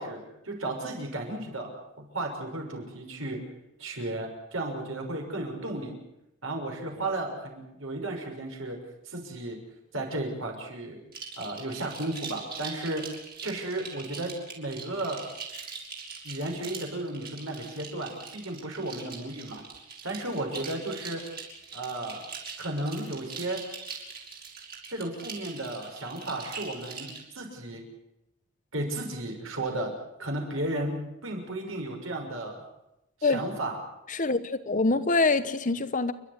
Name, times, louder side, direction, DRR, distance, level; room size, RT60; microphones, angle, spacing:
voice 1, 0.0-3.4 3.8-6.0 6.4-8.8 9.0-9.6 9.9-11.0 11.4-13.0 13.4-15.2 16.2-19.6 20.0-21.2 21.7-22.2 22.6-23.6 24.9-27.8 28.7-29.9 30.2-32.6 33.2-33.8, right 1 dB, 70° right, 2 dB, 6.1 m, -34 dB
sound 1, 11.1-27.2, right 5 dB, 50° right, 5.3 m, -42 dB
voice 2, 34.1-36.1, left 3 dB, 40° left, 12 dB, 1.0 m, -25 dB
29.5 x 12.0 x 9.8 m, 0.90 s
head